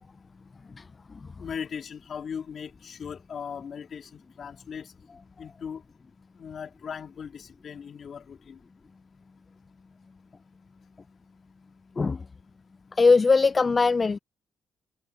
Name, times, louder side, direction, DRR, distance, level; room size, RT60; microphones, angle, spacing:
voice 1, 1.4-4.9 5.4-5.8 6.4-8.6, left 7 dB, 55° left, 3.3 m, -38 dB
voice 2, 12.9-14.2, left 4 dB, 30° left, 0.4 m, -20 dB
cardioid pair, 90°, 0 cm